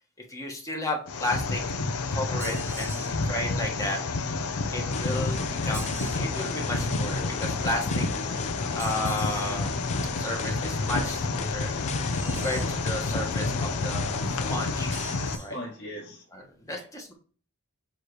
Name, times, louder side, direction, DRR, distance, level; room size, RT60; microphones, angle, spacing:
voice 1, 0.3-1.6 2.1-2.9 3.2-4.0 4.7-8.1 8.7-9.7 10.2-11.7 12.2-14.9 15.4-15.6 16.3-17.1, left 1 dB, 15° left, 1.3 m, -33 dB
sound 1, 1.1-15.4, left 3 dB, 80° left, 0.7 m, -29 dB
sound 2, 2.4-3.2 5.7-6.3 8.8-9.5 12.1-12.8 14.8-15.5, right 3 dB, 10° right, 0.7 m, -42 dB
voice 2, 2.7-3.6 12.6-12.7 15.4-16.2 16.7-16.9, equal, 55° left, 1.8 m, -42 dB
sound 3, 4.9-15.2, left 4 dB, 30° left, 0.4 m, -36 dB
7.3 x 3.2 x 4.6 m
head